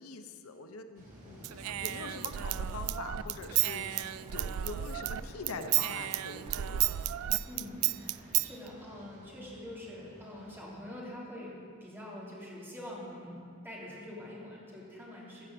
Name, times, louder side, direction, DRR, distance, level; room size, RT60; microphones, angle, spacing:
voice 1, 0.0-6.9, left 3 dB, 85° left, 8 dB, 0.8 m, -44 dB
sound 1, 0.9-10.6, equal, 40° right, 3.0 m, -51 dB
Human voice / Scissors, 1.4-5.2 5.5-8.5, right 14 dB, 85° right, 0.3 m, -32 dB
voice 2, 7.4-13.4 13.6-15.4, left 1 dB, 10° right, -6 dB, 3.2 m, -45 dB
14.5 x 8.1 x 7.7 m, 2.3 s
head